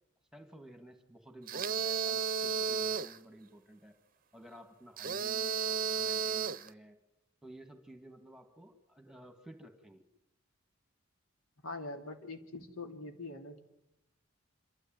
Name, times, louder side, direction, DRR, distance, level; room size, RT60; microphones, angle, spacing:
voice 1, 0.3-4.0 4.3-7.0 7.4-10.1, right 1 dB, 5° right, 6 dB, 1.9 m, -53 dB
sound 1, 1.5-3.2 5.0-6.7, right 6 dB, 40° right, 0.7 m, -33 dB
voice 2, 11.6-13.6, left 2 dB, 85° left, 5 dB, 3.0 m, -43 dB
27.0 x 13.5 x 9.1 m, 0.90 s
head